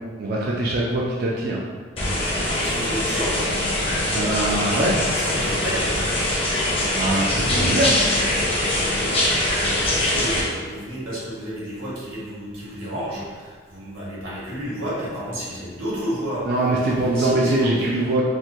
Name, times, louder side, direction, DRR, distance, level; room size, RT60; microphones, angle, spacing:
voice 1, 0.2-1.6 4.1-5.0 7.0-7.9 16.5-18.2, right 1 dB, 50° right, -3 dB, 0.4 m, -22 dB
sound 1, 2.0-10.4, left 1 dB, 30° left, 0.6 m, -22 dB
voice 2, 2.4-3.7 5.1-6.0 9.7-16.5 16.9-18.0, equal, 85° right, -8 dB, 1.4 m, -31 dB
4.3 x 2.1 x 2.6 m, 1.5 s
head